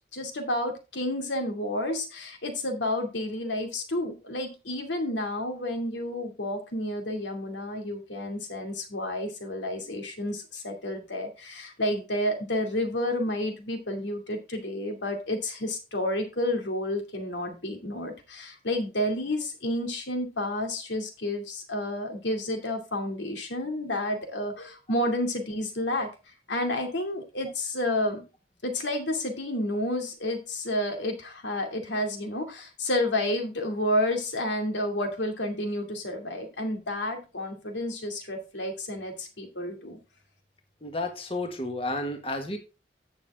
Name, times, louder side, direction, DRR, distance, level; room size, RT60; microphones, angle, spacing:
voice 1, 0.1-26.1 26.5-28.2 28.6-40.0, left 1 dB, 85° left, 4 dB, 2.5 m, -30 dB
voice 2, 40.8-42.6, left 2 dB, 30° left, 5 dB, 1.7 m, -32 dB
9.8 x 7.0 x 3.7 m, 0.30 s
head